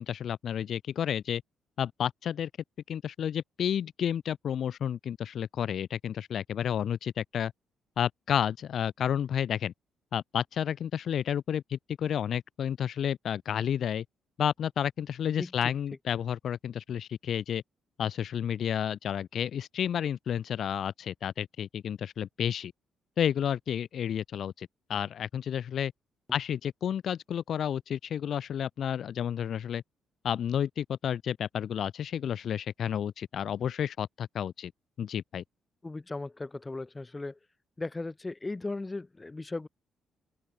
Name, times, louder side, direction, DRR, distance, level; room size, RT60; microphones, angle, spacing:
voice 1, 0.0-1.4 1.8-2.5 2.9-7.5 8.0-9.7 10.1-14.0 14.4-17.6 18.0-22.7 23.2-25.9 26.3-29.8 30.2-34.7 35.0-35.4, left 9 dB, 60° left, 0.3 m, -31 dB
voice 2, 35.8-37.4 37.8-39.7, left 2 dB, 20° left, 1.9 m, -37 dB
open air
cardioid pair, 90°, 0 cm